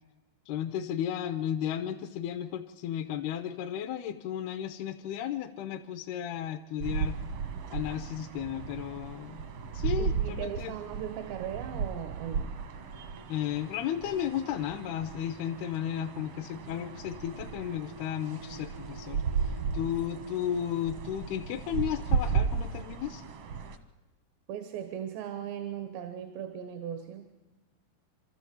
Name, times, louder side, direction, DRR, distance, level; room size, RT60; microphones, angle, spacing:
voice 1, 0.5-7.2 7.7-9.4 9.7-10.7 13.3-23.2, left 10 dB, 75° left, 5 dB, 2.7 m, -34 dB
sound 1, 6.8-23.8, right 6 dB, 70° right, 1.4 m, -35 dB
voice 2, 10.0-12.5 24.5-27.3, right 9 dB, 90° right, 7 dB, 3.5 m, -38 dB
27.0 x 13.5 x 8.5 m, 1.1 s
omnidirectional pair, 4.8 m